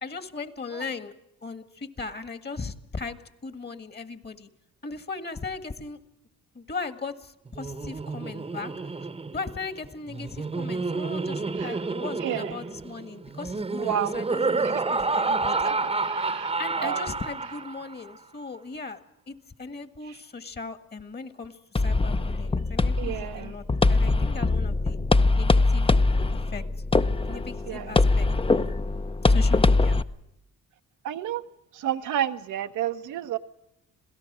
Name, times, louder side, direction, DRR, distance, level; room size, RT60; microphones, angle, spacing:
voice 1, 0.0-1.1 1.4-4.5 4.8-6.0 6.6-8.7 9.3-15.7 16.6-19.0 19.3-25.0 25.3-25.9 26.5-26.6 27.2-28.7 29.2-30.0, left 4 dB, 35° left, 12 dB, 1.8 m, -38 dB
Laughter, 7.5-17.9, right 3 dB, 20° right, 1.0 m, -29 dB
voice 2, 12.2-12.5 13.8-14.1 14.6-14.7 15.6-15.8 16.0-17.1 23.0-23.5 27.1-27.4 27.7-28.0 31.0-31.4 31.7-33.4, right 10 dB, 80° right, 7 dB, 1.0 m, -31 dB
sound 1, 21.8-30.0, left 3 dB, 20° left, 0.7 m, -22 dB
26.5 x 17.0 x 6.2 m, 0.85 s
cardioid pair, 90°, 30 cm